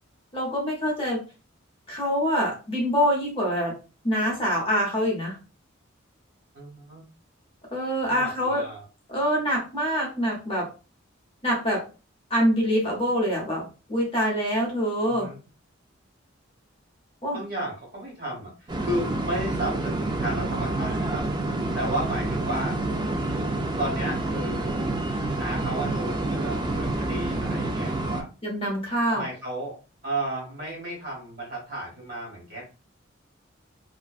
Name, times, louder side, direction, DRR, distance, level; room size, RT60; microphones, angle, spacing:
voice 1, 0.3-1.2 1.9-3.7 4.0-5.4 7.7-8.6 9.1-10.7 11.4-11.8 12.3-13.6 13.9-15.3 17.2-17.4 28.4-29.3, equal, 30° left, -2 dB, 0.8 m, -25 dB
voice 2, 6.5-7.0 8.1-8.8 15.0-15.4 17.3-21.2 21.7-22.8 23.8-24.9 25.3-28.3 29.1-29.8 30.0-32.6, right 1 dB, 50° right, -3 dB, 1.3 m, -33 dB
sound 1, 18.7-28.2, right 2 dB, 20° right, 0.3 m, -28 dB
2.5 x 2.1 x 2.3 m, 0.33 s
head